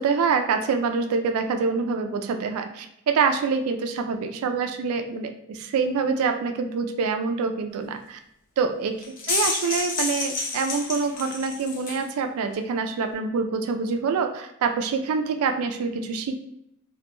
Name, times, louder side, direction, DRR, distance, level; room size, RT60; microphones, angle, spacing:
voice 1, 0.0-8.2 8.6-9.0 9.3-16.3, right 5 dB, 70° right, 7 dB, 0.3 m, -26 dB
sound 1, 9.0-12.0, left 3 dB, 40° left, 0.4 m, -29 dB
2.2 x 2.1 x 2.9 m, 0.80 s
head